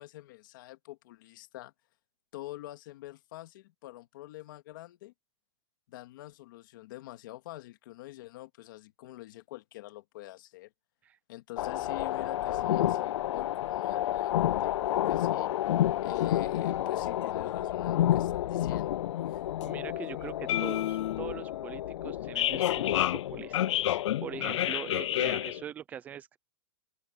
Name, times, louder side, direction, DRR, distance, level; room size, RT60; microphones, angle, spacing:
voice 1, 0.0-1.7 2.3-5.1 5.9-10.7 11.3-15.5 16.0-18.9 19.3-19.4 20.2-20.3, left 17 dB, 45° left, 2.1 m, -46 dB
sound 1, 11.6-25.6, left 13 dB, 75° left, 0.4 m, -29 dB
voice 2, 19.6-26.4, right 9 dB, 10° right, 0.5 m, -43 dB
open air
supercardioid pair, 175°, 15 cm